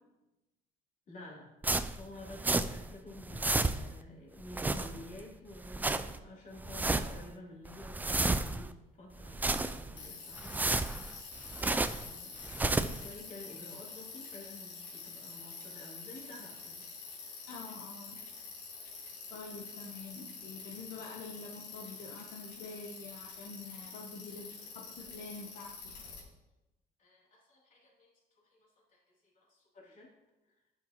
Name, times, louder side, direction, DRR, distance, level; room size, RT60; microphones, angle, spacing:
voice 1, 1.1-1.5 2.0-10.7 11.8-16.9 24.6-24.8 27.0-30.1 30.4-30.6, left 2 dB, 50° left, -4 dB, 3.1 m, -51 dB
sound 1, 1.6-2.9 3.2-4.0 4.4-5.2 5.6-6.2 6.6-7.3 7.7-8.7 9.2-10.0 10.4-12.1 12.4-13.1, right 3 dB, 10° right, 0.3 m, -32 dB
Bicycle, 10.0-26.2, left 4 dB, 90° left, 3.0 m, -47 dB
voice 2, 17.5-18.2 19.3-25.9, left 4 dB, 70° left, -1 dB, 1.1 m, -47 dB
10.5 x 6.0 x 3.0 m, 0.98 s
cardioid pair, 110°, 17 cm